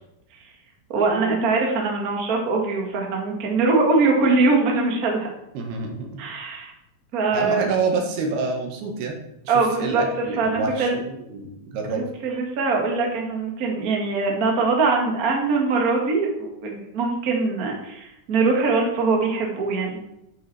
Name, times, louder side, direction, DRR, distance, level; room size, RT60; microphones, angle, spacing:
voice 1, 0.9-5.3 6.2-6.7 7.1-7.7 9.5-10.0 10.4-11.0 11.9-20.0, right 3 dB, 40° right, 0 dB, 1.4 m, -22 dB
voice 2, 5.5-6.1 7.3-9.2 9.4-12.0, right 4 dB, 85° right, 2 dB, 3.5 m, -27 dB
8.6 x 8.1 x 4.3 m, 0.84 s
omnidirectional pair, 4.4 m